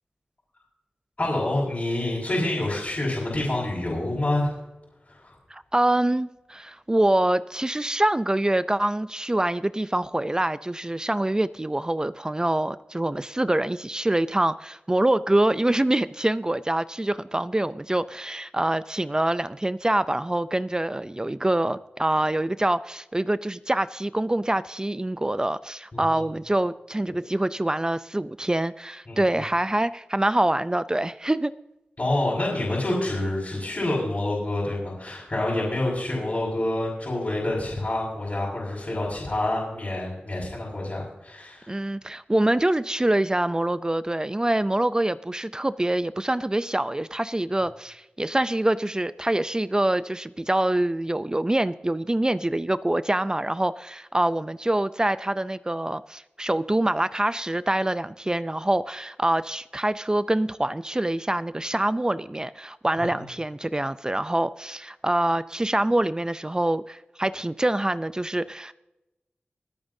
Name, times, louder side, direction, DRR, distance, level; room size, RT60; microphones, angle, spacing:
voice 1, 1.2-4.5 5.1-5.3 25.9-26.2 29.1-29.4 32.0-41.8 63.0-63.1, left 1 dB, 45° left, -6 dB, 5.2 m, -27 dB
voice 2, 5.5-31.5 41.7-68.7, right 1 dB, 20° right, 14 dB, 0.4 m, -25 dB
24.0 x 8.8 x 2.7 m, 0.94 s
wide cardioid pair, 60°, 3 cm